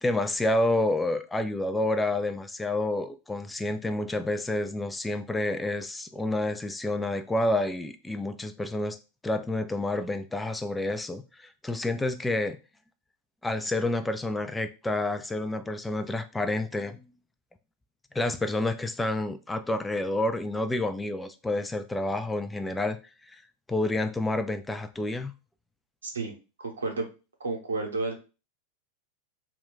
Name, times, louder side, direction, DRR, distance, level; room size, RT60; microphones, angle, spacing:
voice 1, 0.0-9.0 9.2-12.6 13.4-17.1 18.1-23.0 23.3-23.4 23.7-25.3, left 2 dB, 10° left, 0.3 m, -29 dB
voice 2, 26.0-26.3 26.6-27.1 27.4-28.1, right 3 dB, 75° right, 0.8 m, -31 dB
2.3 x 2.2 x 3.8 m
figure-of-eight pair, 90°, 0 cm